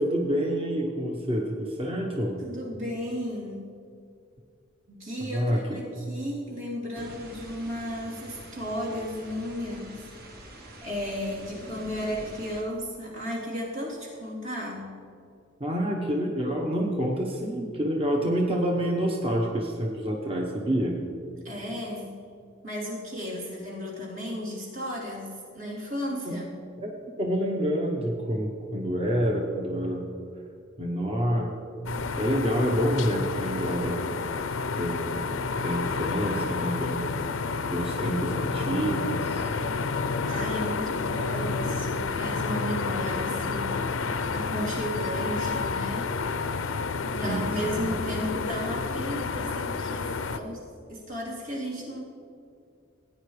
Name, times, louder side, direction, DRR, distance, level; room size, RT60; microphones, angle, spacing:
voice 1, 0.0-2.4 5.3-5.6 15.6-21.1 26.3-26.4 26.8-26.9 27.2-30.1 30.8-31.5 32.2-34.2 34.7-35.3 35.6-37.0 37.6-39.5 47.2-47.9, equal, 30° right, -1 dB, 1.0 m, -28 dB
voice 2, 2.4-3.6 4.9-10.1 10.8-14.9 21.4-22.1 22.6-26.6 40.3-46.1 47.1-52.0, equal, 75° right, -5 dB, 3.3 m, -34 dB
sound 1, 6.9-12.6, right 1 dB, 50° right, 1.4 m, -45 dB
sound 2, 31.9-50.4, left 4 dB, 70° left, 0.5 m, -30 dB
18.0 x 9.4 x 3.2 m, 2.4 s
head